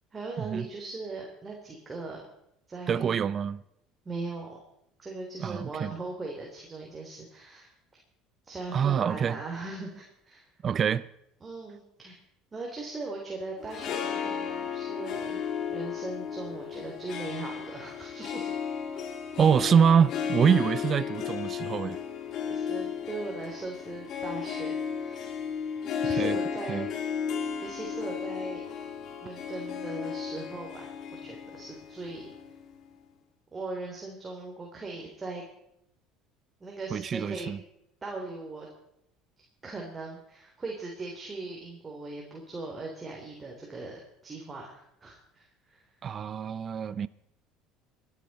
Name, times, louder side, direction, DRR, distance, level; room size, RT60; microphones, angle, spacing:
voice 1, 0.1-2.2 2.7-3.2 4.0-4.6 5.0-7.7 8.4-10.5 11.4-12.1 12.5-15.4 15.7-18.5 22.5-25.3 26.0-27.1 27.6-28.6 29.2-32.3 33.5-35.4 36.6-37.5 38.0-38.7 39.6-45.8, right 3 dB, 25° right, 3.3 m, -39 dB
voice 2, 2.9-3.6 5.4-5.9 8.7-9.4 10.6-11.1 19.4-22.0 26.1-26.4 26.7-26.9 36.9-37.6 46.0-47.1, right 7 dB, 40° right, 0.5 m, -25 dB
Harp, 13.6-33.0, left 7 dB, 55° left, 2.3 m, -34 dB
23.5 x 9.7 x 4.2 m
hypercardioid pair, 70°, 0 cm